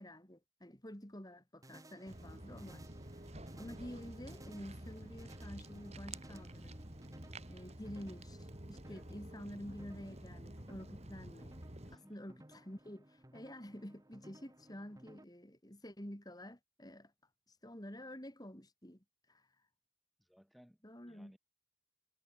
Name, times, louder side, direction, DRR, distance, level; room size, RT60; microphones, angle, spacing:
voice 1, 0.0-2.8 3.6-6.8 7.5-11.5 11.9-17.1 17.5-19.7 20.8-21.3, equal, 20° left, 3.0 m, -49 dB
sound 1, 1.6-15.2, right 1 dB, 15° right, 2.1 m, -60 dB
Walk footsteps, 2.1-12.0, right 1 dB, 35° right, 3.0 m, -50 dB
voice 2, 11.8-12.2 20.2-20.8 21.1-21.4, equal, ahead, 3.8 m, -63 dB
head